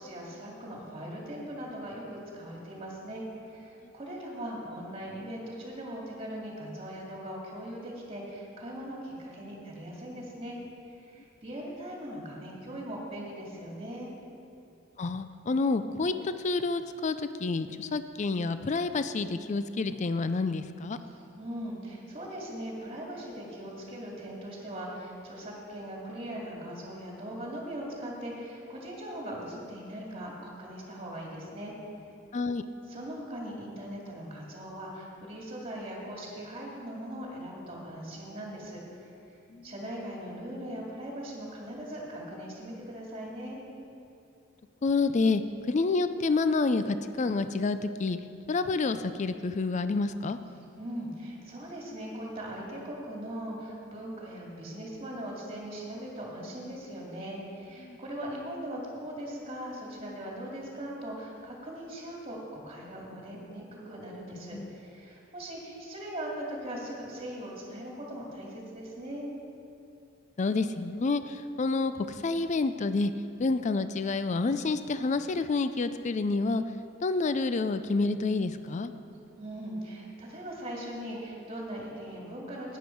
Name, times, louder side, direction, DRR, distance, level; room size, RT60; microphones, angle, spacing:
voice 1, 0.0-10.6 11.0-14.1 21.0-31.7 32.9-39.1 39.6-43.6 50.8-69.3 79.4-82.8, right 1 dB, 30° right, -3 dB, 2.3 m, -40 dB
voice 2, 15.0-21.0 32.3-32.6 39.5-39.7 44.8-45.4 45.7-48.2 48.5-50.4 57.8-58.0 64.5-64.7 70.4-73.1 73.4-76.6 77.0-78.9, left 3 dB, 35° left, 11 dB, 0.4 m, -28 dB
12.5 x 9.4 x 4.5 m, 2.7 s
head